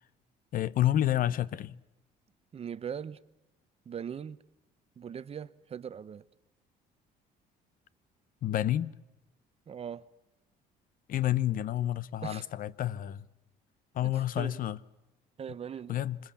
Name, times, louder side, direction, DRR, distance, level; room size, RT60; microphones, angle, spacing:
voice 1, 0.5-1.8 8.4-8.9 11.1-13.3 13.9-14.8 15.9-16.2, left 12 dB, 55° left, 0.9 m, -29 dB
voice 2, 2.5-3.2 3.9-4.4 5.0-6.2 9.7-10.0 12.2-12.5 14.4-14.6 15.4-16.0, right 8 dB, 35° right, 0.9 m, -40 dB
26.5 x 21.5 x 7.2 m
cardioid pair, 110°, 17 cm